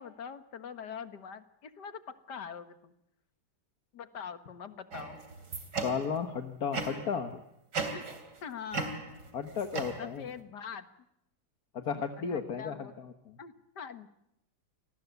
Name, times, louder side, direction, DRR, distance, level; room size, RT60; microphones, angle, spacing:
voice 1, 0.0-2.9 3.9-5.2 7.9-8.1 8.4-8.9 10.0-10.9 12.2-12.9 13.4-14.1, left 7 dB, 80° left, 11 dB, 2.1 m, -43 dB
sound 1, 4.9-6.3 6.7-7.2 7.7-8.4 8.7-10.4, right 4 dB, 85° right, 3.7 m, -37 dB
voice 2, 5.8-7.4 9.3-10.2 11.7-13.4, left 6 dB, 60° left, 7 dB, 1.8 m, -34 dB
27.5 x 20.0 x 8.2 m, 0.82 s
omnidirectional pair, 1.8 m